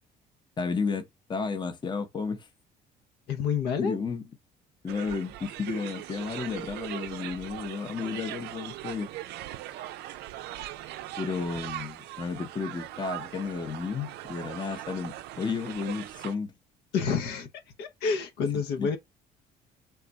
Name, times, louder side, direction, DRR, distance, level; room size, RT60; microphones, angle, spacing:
voice 1, 0.6-2.5 3.8-4.2 4.8-9.1 11.2-16.5 18.8-19.0, left 5 dB, 25° left, 0.7 m, -32 dB
voice 2, 3.3-4.0 16.9-17.5 17.8-19.0, left 6 dB, 85° left, 0.7 m, -28 dB
sound 1, 4.9-16.4, right 14 dB, 80° right, 0.4 m, -40 dB
3.5 x 2.4 x 4.0 m
cardioid pair, 110°, 17 cm